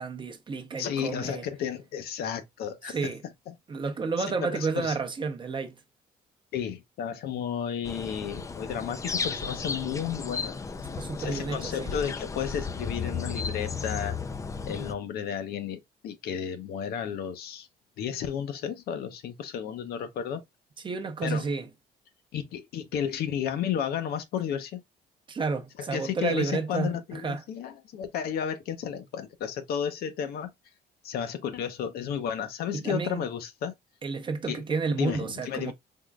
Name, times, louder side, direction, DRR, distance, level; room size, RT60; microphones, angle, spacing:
voice 1, 0.0-1.4 2.9-3.2 3.7-5.8 11.0-11.9 20.8-21.7 25.3-27.4 32.7-33.2 34.0-35.7, right 4 dB, 30° right, 0.6 m, -31 dB
voice 2, 0.8-3.1 4.4-5.0 6.5-10.6 11.2-14.2 14.7-17.7 18.0-20.4 21.2-21.5 22.3-24.8 25.8-30.5 31.0-33.7 34.5-34.6 35.0-35.7, left 8 dB, 70° left, 0.7 m, -32 dB
sound 1, 7.8-14.9, left 5 dB, 20° left, 0.4 m, -34 dB
3.7 x 2.9 x 2.3 m
cardioid pair, 110°, 17 cm